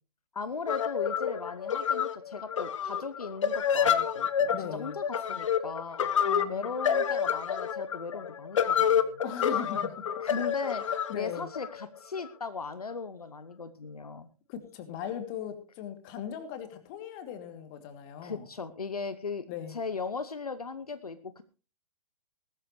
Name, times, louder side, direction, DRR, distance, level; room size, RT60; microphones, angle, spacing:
voice 1, 0.3-6.1 6.5-9.2 10.2-10.8 11.1-14.3 18.2-21.4, left 5 dB, 75° left, 12 dB, 1.0 m, -38 dB
sound 1, 0.7-12.3, left 8 dB, 55° left, 1.3 m, -28 dB
voice 2, 4.5-5.0 6.2-6.7 9.2-10.0 10.8-11.5 14.5-18.5 19.5-19.7, left 9 dB, 35° left, 8 dB, 2.6 m, -39 dB
19.5 x 13.0 x 3.1 m, 0.34 s
figure-of-eight pair, 120°, 19 cm